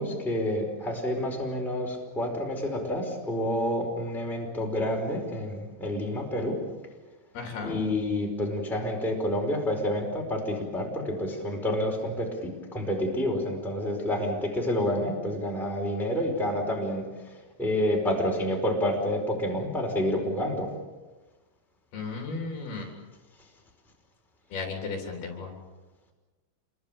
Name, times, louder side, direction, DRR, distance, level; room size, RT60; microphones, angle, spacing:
voice 1, 0.0-6.6 7.6-17.1 17.6-20.7, left 1 dB, ahead, 0 dB, 4.4 m, -29 dB
voice 2, 7.3-7.8 21.9-22.9 24.5-25.5, left 4 dB, 60° left, 2 dB, 5.4 m, -34 dB
27.5 x 23.5 x 7.1 m, 1.2 s
omnidirectional pair, 5.1 m